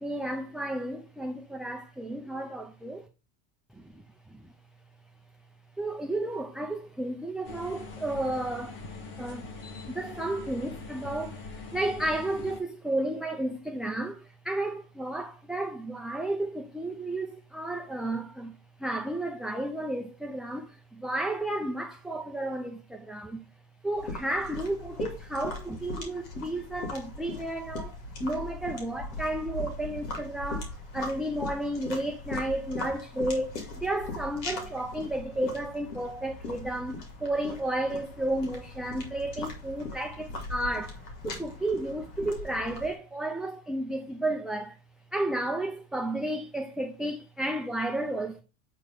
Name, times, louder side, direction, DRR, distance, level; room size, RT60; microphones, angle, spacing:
voice 1, 0.0-3.0 5.8-8.8 9.2-9.5 9.9-18.5 18.8-23.4 23.8-41.0 41.2-44.8 45.1-48.4, right 1 dB, ahead, 0.5 m, -32 dB
sound 1, 7.4-12.6, left 4 dB, 65° left, 1.9 m, -42 dB
sound 2, 23.9-43.0, left 2 dB, 90° left, 2.5 m, -40 dB
8.0 x 3.1 x 5.3 m
supercardioid pair, 120°, 48 cm